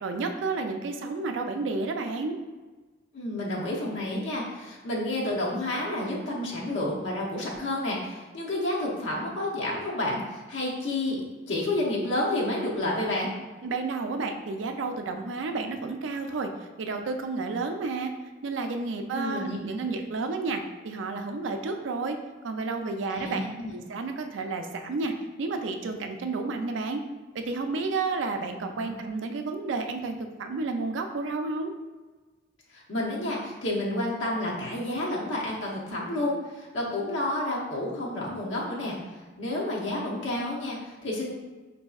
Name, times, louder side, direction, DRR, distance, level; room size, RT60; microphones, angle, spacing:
voice 1, 0.0-2.4 13.6-16.5 16.8-18.1 18.4-22.2 22.4-23.4 23.7-25.1 25.4-27.0 27.3-31.7, right 3 dB, 70° right, 6 dB, 0.4 m, -31 dB
voice 2, 3.1-11.2 11.5-13.3 19.1-19.6 23.1-23.7 28.8-28.9 32.7-39.0 39.4-41.3, left 1 dB, 70° left, -4 dB, 0.7 m, -30 dB
5.1 x 2.7 x 2.3 m, 1.3 s
head